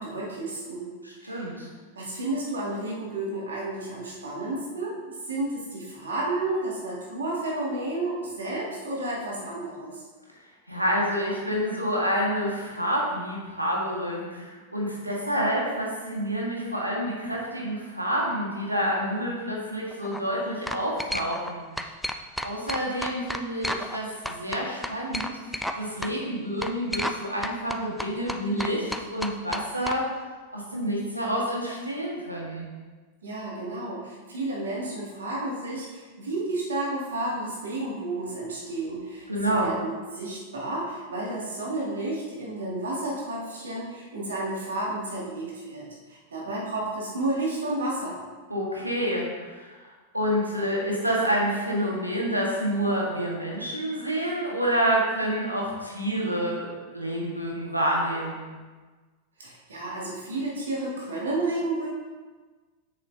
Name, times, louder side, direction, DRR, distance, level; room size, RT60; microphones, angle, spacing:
voice 1, 0.0-0.9 1.2-1.5 2.0-10.0 33.2-48.2 59.4-61.9, right 2 dB, 70° right, -4 dB, 2.3 m, -31 dB
voice 2, 1.0-1.7 10.7-21.6 22.4-30.0 30.5-32.7 39.3-39.7 48.5-56.7 56.9-58.5, equal, 85° right, -3 dB, 1.6 m, -28 dB
sound 1, 19.9-20.2 20.7-21.5 21.8-24.0 24.3-25.8 26.0-26.1 26.6-27.2 27.4-30.0, equal, ahead, 0.5 m, -32 dB
8.3 x 6.8 x 2.8 m, 1.4 s
figure-of-eight pair, 90°, 0 cm